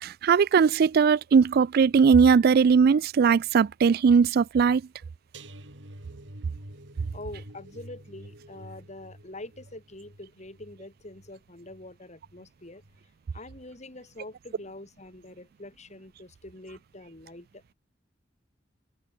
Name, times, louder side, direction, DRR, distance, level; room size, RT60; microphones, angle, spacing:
voice 1, 0.0-4.8, right 6 dB, 55° right, 0.3 m, -19 dB
sound 1, 5.3-12.4 12.8-13.1 13.4-13.5, right 1 dB, 80° right, 6.2 m, -48 dB
voice 2, 7.1-12.8 13.3-17.7, left 2 dB, 40° left, 3.9 m, -45 dB
head